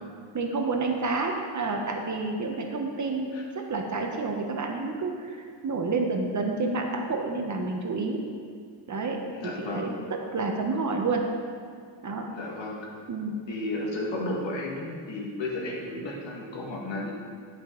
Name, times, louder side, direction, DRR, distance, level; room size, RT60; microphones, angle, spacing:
voice 1, 0.3-8.2 8.9-9.2 9.4-11.2 12.0-12.3 13.1-13.4, right 3 dB, 35° right, 2 dB, 1.0 m, -29 dB
voice 2, 9.3-9.9 12.3-12.8 13.5-17.1, left 2 dB, 65° left, -2 dB, 1.9 m, -33 dB
11.0 x 5.3 x 3.9 m, 2.1 s
cardioid pair, 90°, 49 cm